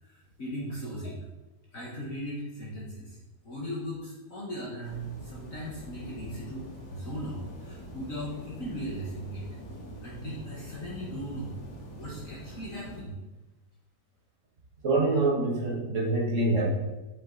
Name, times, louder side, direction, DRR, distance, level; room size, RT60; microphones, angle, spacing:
voice 1, 0.0-1.2 1.7-3.2 3.4-9.5 10.0-11.5 12.0-13.2, equal, 50° left, -5 dB, 1.9 m, -38 dB
sound 1, 4.8-13.0, equal, 80° left, 3.2 m, -44 dB
voice 2, 14.8-16.6, right 2 dB, 45° right, -3 dB, 1.7 m, -25 dB
8.6 x 6.9 x 4.0 m, 1.1 s
omnidirectional pair, 1.9 m